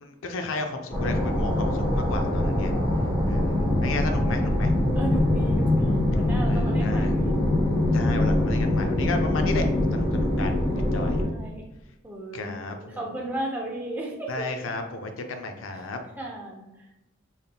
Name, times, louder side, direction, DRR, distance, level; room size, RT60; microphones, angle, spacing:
voice 1, 0.0-2.7 3.3-4.7 6.5-7.1 7.9-9.6 9.9-10.5 10.9-11.2 12.3-13.2 14.3-16.0, left 3 dB, 70° left, 5 dB, 0.5 m, -33 dB
sound 1, 0.9-11.2, left 1 dB, 15° left, 1.2 m, -23 dB
voice 2, 4.9-7.4 11.0-11.6 12.0-14.3 16.2-16.6, right 1 dB, 10° right, -2 dB, 0.6 m, -35 dB
3.9 x 3.5 x 2.2 m, 0.99 s
head